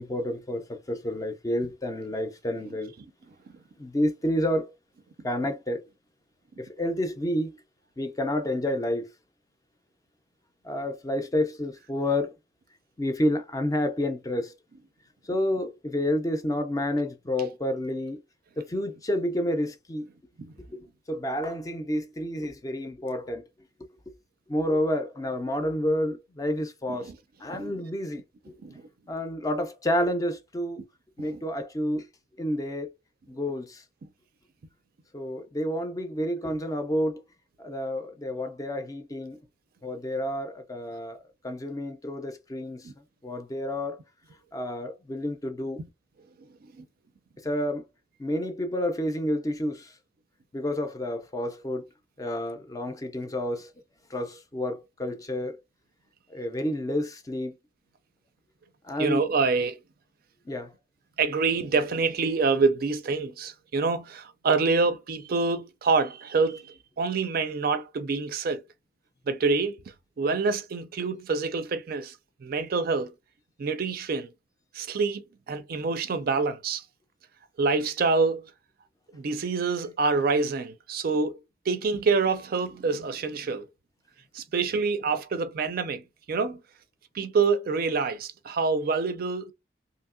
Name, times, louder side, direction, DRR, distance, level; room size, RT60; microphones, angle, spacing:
voice 1, 0.0-2.9 3.8-4.7 5.2-5.8 6.6-7.6 8.0-9.1 10.6-12.3 13.0-14.5 15.3-18.2 18.6-20.1 20.6-23.4 24.5-27.1 27.4-28.6 29.1-30.8 31.2-32.1 32.4-32.9 33.3-33.8 35.1-37.2 37.6-39.4 39.8-41.2 41.4-42.9 43.2-44.0 44.5-45.8 47.4-47.8 48.2-49.9 50.5-51.8 52.2-53.7 54.1-55.6 56.3-57.6 58.8-59.2 60.5-60.7, left 1 dB, 20° left, 0.4 m, -29 dB
voice 2, 27.5-27.8 28.6-28.8 31.2-31.4 42.8-42.9 46.8-46.9 59.0-59.8 61.2-68.6 69.3-69.8 70.2-72.1 72.4-73.1 73.6-74.3 74.7-76.8 77.6-78.4 79.1-81.4 81.7-83.7 84.3-86.6 87.1-89.5, right 4 dB, 55° right, 0.4 m, -26 dB
2.8 x 2.7 x 2.4 m
head